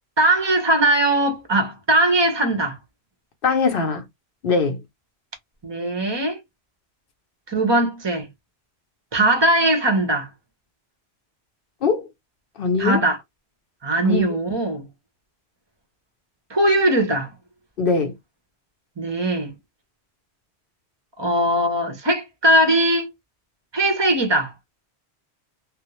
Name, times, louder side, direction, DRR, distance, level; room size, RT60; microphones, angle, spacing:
voice 1, 0.2-2.8 5.6-6.4 7.5-8.3 9.1-10.3 12.8-13.2 13.8-14.9 16.5-17.3 19.0-19.5 21.2-23.1 23.7-24.5, right 1 dB, 30° right, 0.6 m, -20 dB
voice 2, 3.4-4.0 4.4-4.8 11.8-12.1 12.6-13.0 14.0-14.2 17.8-18.2, left 4 dB, 65° left, 0.7 m, -21 dB
2.3 x 2.0 x 2.9 m
omnidirectional pair, 1.1 m